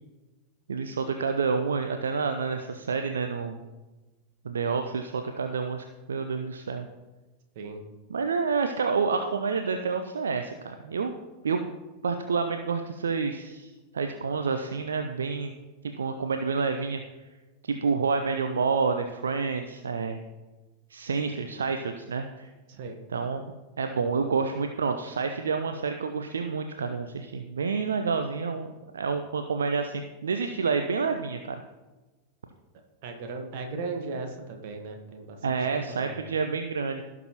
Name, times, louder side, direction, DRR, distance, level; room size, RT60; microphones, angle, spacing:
voice 1, 0.7-3.6 4.4-6.9 8.1-11.1 11.4-11.7 12.0-15.5 16.0-17.0 17.6-20.2 20.9-22.5 23.1-23.4 23.8-28.7 28.9-31.6 35.4-37.0, right 5 dB, 70° right, 7 dB, 0.5 m, -28 dB
voice 2, 33.0-36.2, right 3 dB, 50° right, 4 dB, 1.3 m, -37 dB
16.5 x 6.0 x 3.0 m, 1.2 s
figure-of-eight pair, 90°, 0 cm